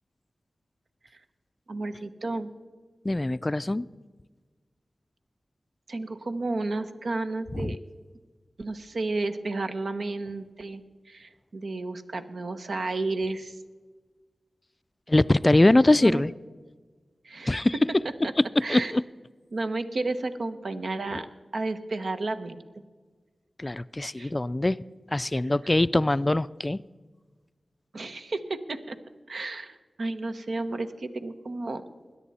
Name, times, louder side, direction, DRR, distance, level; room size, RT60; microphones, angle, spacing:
voice 1, 1.7-2.5 5.9-7.8 8.6-13.6 16.0-16.2 17.2-17.7 18.2-18.3 18.6-19.0 19.5-21.3 21.5-22.7 24.2-24.3 25.4-25.5 27.9-29.0 29.3-31.8, right 2 dB, 75° right, 8 dB, 0.9 m, -32 dB
voice 2, 3.0-3.9 7.5-7.8 15.1-16.3 17.5-17.7 18.7-19.0 21.1-21.2 23.6-24.8 25.1-26.8, left 2 dB, 30° left, 17 dB, 0.3 m, -22 dB
21.0 x 9.8 x 4.2 m, 1.4 s
cardioid pair, 50°, 0 cm